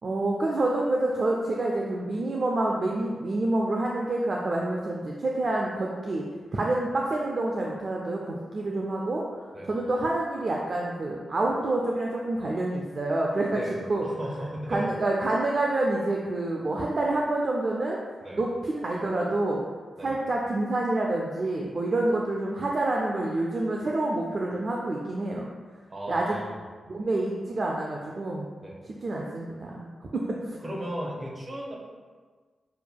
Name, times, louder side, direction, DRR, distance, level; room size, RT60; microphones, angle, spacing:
voice 1, 0.0-6.2 6.5-13.6 13.9-14.1 14.7-18.0 18.3-19.6 20.0-25.5 26.1-26.4 26.9-28.5 29.0-29.9 30.1-30.6, right 2 dB, 55° right, -2 dB, 0.4 m, -27 dB
voice 2, 13.5-14.9 18.2-18.4 20.0-20.1 25.9-26.6 28.6-28.8 30.6-31.7, right 1 dB, 40° right, -3 dB, 1.1 m, -35 dB
6.5 x 2.6 x 2.3 m, 1.5 s
cardioid pair, 55°, 0 cm